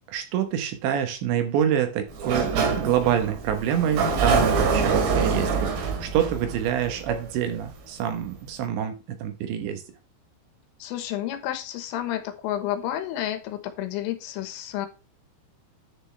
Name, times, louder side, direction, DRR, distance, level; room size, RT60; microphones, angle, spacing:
voice 1, 0.1-9.8, right 9 dB, 75° right, 7 dB, 3.1 m, -26 dB
Sliding door, 2.1-7.8, right 5 dB, 55° right, 3.4 m, -25 dB
voice 2, 10.8-14.9, left 12 dB, 85° left, 8 dB, 3.8 m, -30 dB
10.0 x 6.9 x 3.3 m, 0.30 s
omnidirectional pair, 5.7 m